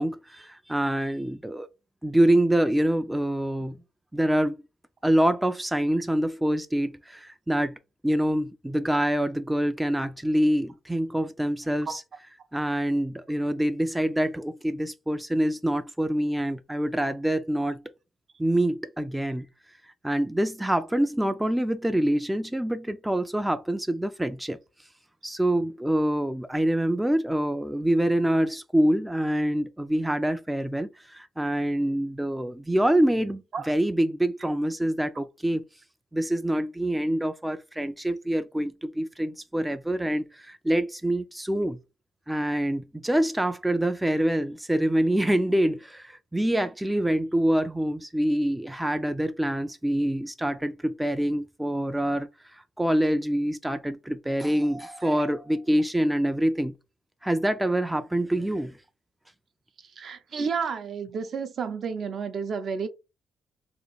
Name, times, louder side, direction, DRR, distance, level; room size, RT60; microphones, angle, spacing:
voice 1, 0.0-1.7 2.0-3.8 4.1-4.6 5.0-7.8 8.0-12.0 12.5-17.8 18.4-19.5 20.0-24.6 25.2-35.6 36.1-41.8 42.3-56.8 57.2-58.8, right 1 dB, 5° right, 0.3 m, -25 dB
voice 2, 60.0-62.9, right 5 dB, 55° right, 0.6 m, -31 dB
2.9 x 2.5 x 3.8 m
cardioid pair, 90°, 0 cm